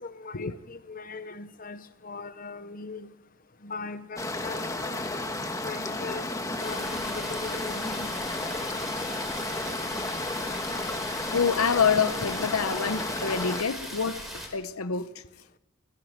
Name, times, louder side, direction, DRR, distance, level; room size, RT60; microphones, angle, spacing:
voice 1, 0.0-3.1 3.6-5.0 5.6-8.1, left 3 dB, 40° left, 1.0 m, -40 dB
sound 1, 4.2-13.6, left 2 dB, 15° left, 1.4 m, -32 dB
sound 2, 6.6-14.5, equal, ahead, 4.7 m, -39 dB
voice 2, 11.3-15.2, left 6 dB, 85° left, 0.9 m, -27 dB
20.5 x 15.5 x 8.8 m
head